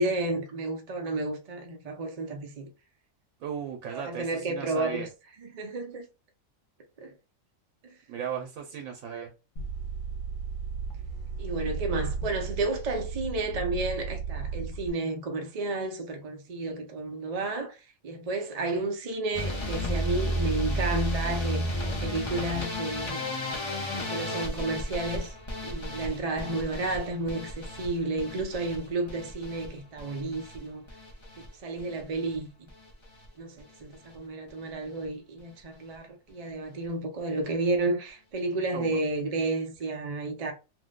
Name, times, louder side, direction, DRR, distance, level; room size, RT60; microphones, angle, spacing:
voice 1, 0.0-2.7 3.9-5.1 5.4-6.1 7.0-7.1 7.8-7.9 11.4-23.3 23.9-25.4 25.6-30.9 31.4-32.7 33.4-40.5, right 2 dB, 50° right, 0.4 m, -32 dB
voice 2, 3.4-5.1 8.1-9.3 38.7-39.0, right 7 dB, 85° right, 1.0 m, -36 dB
sound 1, 9.6-14.9, right 5 dB, 70° left, 1.1 m, -35 dB
sound 2, 19.3-31.5 31.8-32.4 32.7-33.3 33.6-33.8 34.1-34.2 34.5-34.6, equal, 35° left, 0.4 m, -33 dB
2.6 x 2.1 x 3.6 m
omnidirectional pair, 1.4 m